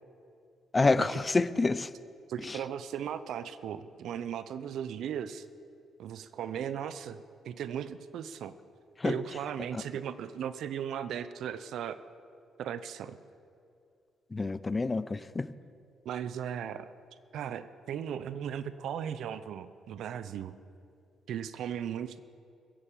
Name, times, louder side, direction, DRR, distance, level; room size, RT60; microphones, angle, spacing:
voice 1, 0.7-1.9 2.4-2.6 9.0-9.2 14.3-15.5, left 3 dB, 25° left, 16 dB, 0.5 m, -27 dB
voice 2, 2.3-5.4 6.0-8.5 9.0-12.0 12.6-13.2 16.0-16.9 17.3-20.5 21.3-22.2, right 9 dB, 75° right, 13 dB, 0.6 m, -37 dB
16.0 x 8.7 x 7.5 m, 2.5 s
cardioid pair, 90°, 0 cm